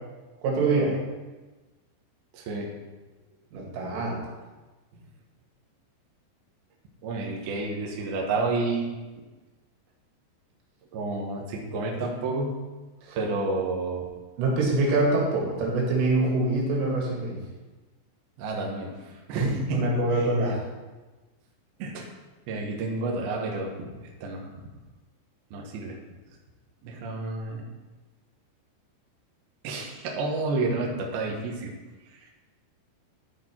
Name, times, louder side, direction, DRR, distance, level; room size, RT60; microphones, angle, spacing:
voice 1, 0.4-1.0 3.5-4.2 13.0-13.2 14.4-17.4 19.3-20.6, right 2 dB, 85° right, -2 dB, 4.6 m, -25 dB
voice 2, 7.0-8.9 10.9-12.5 13.1-14.1 18.4-18.9 19.3-19.9 21.8-22.1 22.5-23.9 24.2-24.5 25.5-26.0 26.8-27.6 29.6-31.7, right 3 dB, 65° right, 0 dB, 2.7 m, -30 dB
13.0 x 6.0 x 4.5 m, 1.2 s
omnidirectional pair, 5.6 m